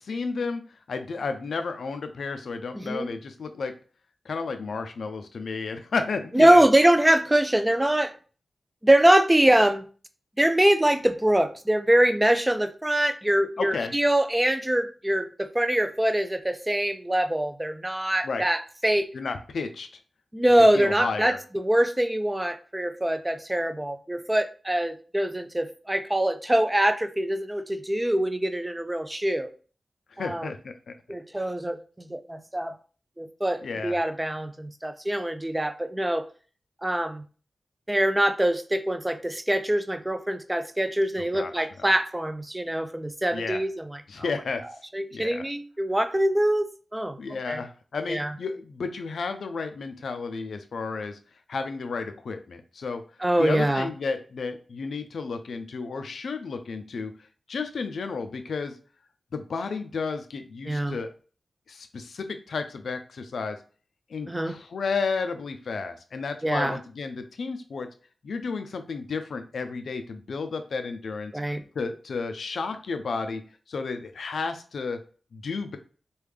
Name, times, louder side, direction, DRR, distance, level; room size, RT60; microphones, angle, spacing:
voice 1, 0.0-3.7 4.3-6.6 13.6-14.0 18.2-18.4 19.1-19.9 20.7-21.4 30.1-30.9 33.6-34.0 41.3-41.7 43.3-43.6 44.1-44.6 45.1-45.4 47.2-51.2 51.5-53.0 53.4-57.1 57.5-58.8 59.3-61.1 61.7-63.6 64.1-67.9 68.2-71.3 71.8-73.4 73.7-75.0 75.3-75.8, left 4 dB, 80° left, 7 dB, 0.4 m, -32 dB
voice 2, 2.8-3.1 6.3-8.1 8.8-9.8 10.4-19.1 20.3-29.5 30.2-30.5 31.1-32.7 33.2-36.2 36.8-37.2 37.9-44.0 44.9-47.2 47.5-47.6 48.1-48.3 53.2-53.9 60.7-61.0 64.3-64.6 66.4-66.8 71.3-71.6, right 1 dB, 15° right, 9 dB, 0.4 m, -23 dB
3.4 x 2.3 x 3.2 m, 0.39 s
cardioid pair, 70°, 0 cm